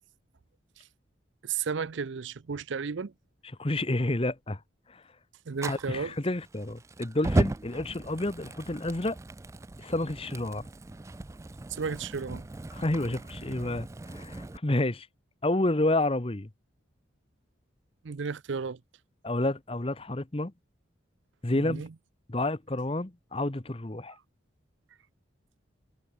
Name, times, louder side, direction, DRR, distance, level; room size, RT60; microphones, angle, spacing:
voice 1, 1.4-3.1 5.5-6.1 11.7-12.5 18.0-18.8 21.6-21.9, right 5 dB, 70° right, 0.5 m, -33 dB
voice 2, 3.6-4.6 4.9-5.0 5.7-9.2 9.8-10.7 12.7-15.1 15.4-16.5 19.2-20.5 21.4-21.8 22.3-24.1, left 1 dB, 30° left, 1.0 m, -29 dB
Fire, 5.6-14.6, right 2 dB, 15° right, 0.3 m, -36 dB
head